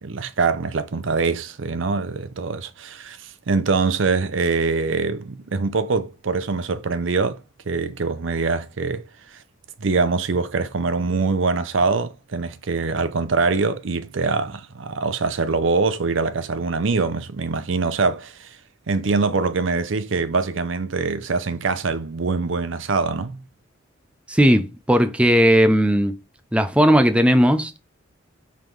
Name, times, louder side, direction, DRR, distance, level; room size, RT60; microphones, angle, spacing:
voice 1, 0.0-9.0 9.3-9.4 9.8-18.6 18.9-23.4, right 4 dB, 75° right, 0.6 m, -23 dB
voice 2, 24.3-26.1 26.5-27.8, equal, 5° right, 0.5 m, -17 dB
5.7 x 3.5 x 4.6 m
head